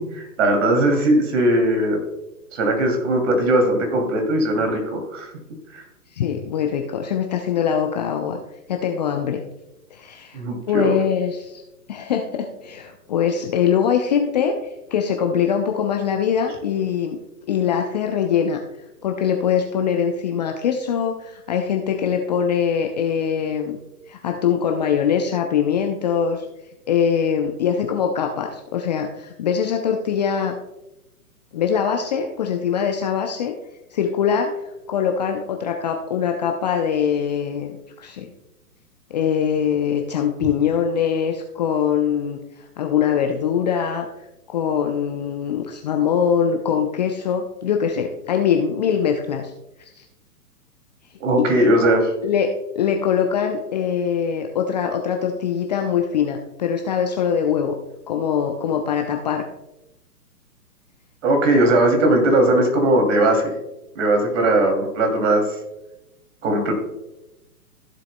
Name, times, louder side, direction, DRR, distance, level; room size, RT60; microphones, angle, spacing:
voice 1, 0.1-2.0 2.5-5.3 5.7-5.8 10.3-11.0 51.2-52.1 61.2-63.5 63.9-65.5 66.4-66.7, right 1 dB, 50° right, 3 dB, 2.7 m, -19 dB
voice 2, 6.1-8.4 8.7-9.4 9.9-10.4 10.7-11.6 11.9-17.2 17.5-18.6 19.0-23.8 24.1-26.5 26.9-30.6 31.5-33.5 33.9-34.5 34.9-38.3 39.1-42.4 42.8-44.1 44.5-49.5 49.8-50.0 51.4-51.5 51.8-51.9 52.2-52.5 52.8-57.8 58.1-59.5, left 7 dB, 30° left, 3 dB, 0.5 m, -22 dB
15.0 x 7.5 x 2.2 m, 0.94 s
figure-of-eight pair, 130°, 47 cm